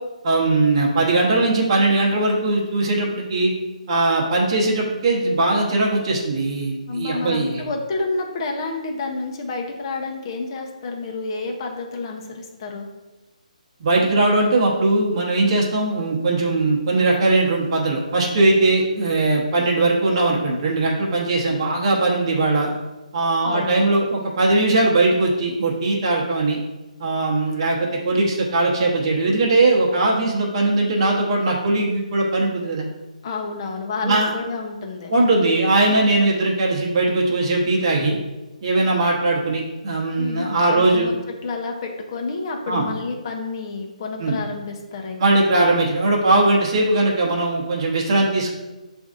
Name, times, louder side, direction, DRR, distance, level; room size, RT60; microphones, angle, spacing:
voice 1, 0.2-3.5 3.9-7.6 13.8-22.7 23.1-26.6 27.0-32.9 34.0-34.3 35.1-38.2 38.6-41.1 42.7-42.8 44.2-44.3 45.2-48.5, right 2 dB, 40° right, -3 dB, 0.9 m, -20 dB
voice 2, 6.9-12.9 23.4-23.9 33.2-35.1 40.2-41.1 41.4-45.2, left 3 dB, 35° left, 2 dB, 0.7 m, -29 dB
6.9 x 2.6 x 2.5 m, 1.1 s
hypercardioid pair, 155°, 4 cm